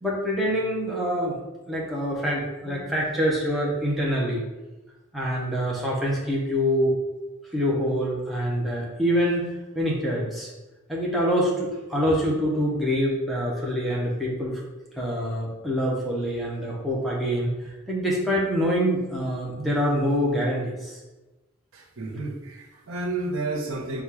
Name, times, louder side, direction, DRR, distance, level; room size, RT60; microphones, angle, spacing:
voice 1, 0.0-1.4 1.7-4.4 5.1-7.0 7.5-9.4 9.7-10.5 10.9-14.6 15.0-21.0, equal, ahead, -6 dB, 0.8 m, -25 dB
voice 2, 21.7-24.0, right 2 dB, 80° right, 1 dB, 0.7 m, -31 dB
4.2 x 2.3 x 4.7 m, 1.1 s
head